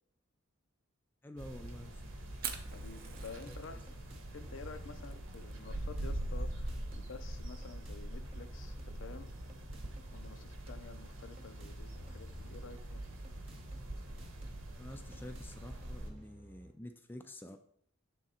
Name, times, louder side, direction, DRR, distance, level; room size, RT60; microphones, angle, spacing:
voice 1, 1.2-2.0 3.4-3.8 14.8-17.6, left 1 dB, 10° left, 6 dB, 0.3 m, -49 dB
sound 1, 1.4-16.1, right 1 dB, 80° right, 0.9 m, -43 dB
Fire, 2.3-12.1, right 8 dB, 45° right, 0.6 m, -50 dB
voice 2, 2.7-3.8 4.3-9.3 10.1-13.0, left 5 dB, 65° left, 10 dB, 0.5 m, -50 dB
sound 2, 2.7-16.7, right 1 dB, 30° right, 0.9 m, -55 dB
6.2 x 3.7 x 4.2 m, 0.65 s
head